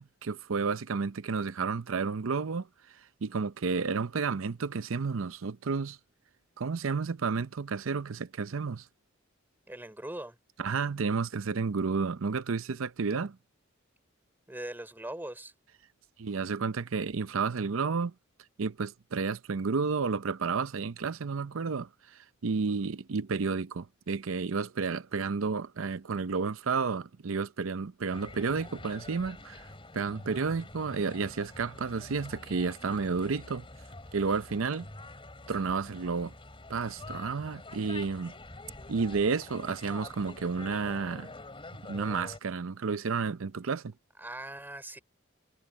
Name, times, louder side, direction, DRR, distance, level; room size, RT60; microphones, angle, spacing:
voice 1, 0.0-2.7 3.2-6.0 6.6-8.9 10.6-13.4 16.2-18.1 18.6-29.6 29.9-33.7 34.1-34.9 35.5-36.3 36.7-38.3 38.9-41.3 41.9-43.9, right 5 dB, 75° right, 0.6 m, -31 dB
voice 2, 9.7-10.4 14.5-15.5 44.2-45.0, right 1 dB, 10° right, 3.2 m, -40 dB
sound 1, 28.1-42.4, left 2 dB, 25° left, 3.7 m, -47 dB
head